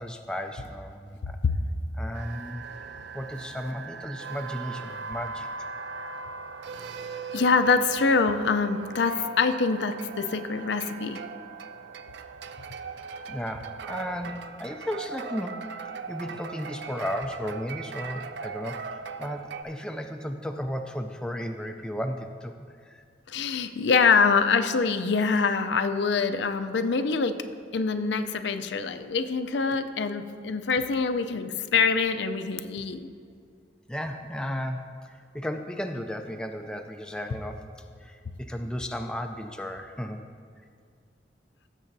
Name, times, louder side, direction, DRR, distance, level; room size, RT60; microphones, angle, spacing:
voice 1, 0.0-1.4 1.9-2.6 3.1-5.5 13.3-15.7 16.1-22.5 22.8-23.0 33.9-37.6 38.0-40.2, equal, 5° left, 4 dB, 0.3 m, -34 dB
sound 1, 2.1-19.6, right 5 dB, 70° right, 0.4 m, -39 dB
voice 2, 7.3-11.2 23.3-27.4 27.7-33.1, left 5 dB, 75° left, 8 dB, 0.5 m, -25 dB
15.5 x 7.4 x 2.7 m, 2.2 s
head